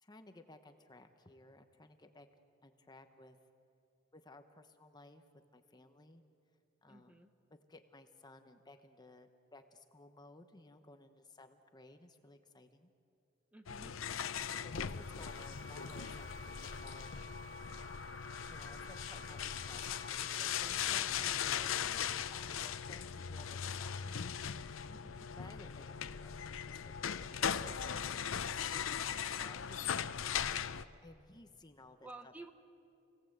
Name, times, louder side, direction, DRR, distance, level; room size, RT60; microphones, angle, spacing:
voice 1, 0.0-2.3 2.6-3.4 4.1-5.2 5.5-6.2 6.8-7.2 7.5-12.9 14.3-17.1 18.5-21.8 22.3-24.2 25.3-26.9 27.2-29.8 31.0-32.3, left 2 dB, 20° left, 7 dB, 1.0 m, -58 dB
voice 2, 6.9-7.3 13.5-14.0 24.9-25.3 32.0-32.5, right 2 dB, 10° right, 7 dB, 1.1 m, -53 dB
sound 1, 13.7-30.8, left 8 dB, 85° left, 0.7 m, -39 dB
sound 2, 14.3-20.8, equal, 45° right, 1.7 m, -54 dB
29.0 x 18.0 x 8.0 m, 2.6 s
head